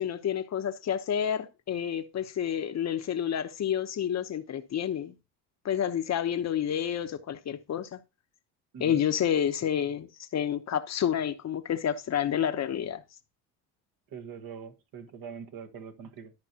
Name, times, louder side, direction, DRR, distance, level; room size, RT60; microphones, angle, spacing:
voice 1, 0.0-5.1 5.6-8.0 8.8-13.0, left 9 dB, 45° left, 0.9 m, -29 dB
voice 2, 14.1-16.3, right 7 dB, 60° right, 1.5 m, -43 dB
12.5 x 5.3 x 2.8 m
cardioid pair, 105°, 39 cm